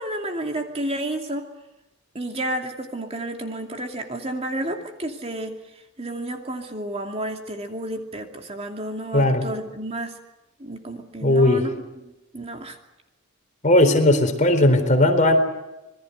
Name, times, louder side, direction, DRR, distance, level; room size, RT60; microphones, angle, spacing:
voice 1, 0.0-1.4 2.1-5.5 6.0-10.1 10.6-11.7 12.3-12.8, right 1 dB, 30° right, 4 dB, 2.7 m, -31 dB
voice 2, 9.1-9.4 11.2-11.6 13.6-15.4, left 1 dB, 35° left, 6 dB, 4.0 m, -17 dB
27.0 x 21.5 x 8.1 m, 1.0 s
head